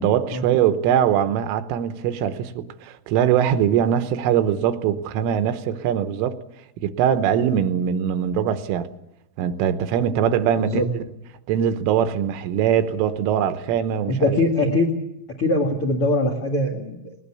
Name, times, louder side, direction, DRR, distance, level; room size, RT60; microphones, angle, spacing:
voice 1, 0.0-6.4 6.8-8.9 9.4-10.8 11.5-14.4 14.6-14.7, right 9 dB, 80° right, 3.5 m, -22 dB
voice 2, 14.1-14.9 15.4-17.1, left 2 dB, 55° left, 1.5 m, -22 dB
20.5 x 20.0 x 8.5 m
omnidirectional pair, 5.8 m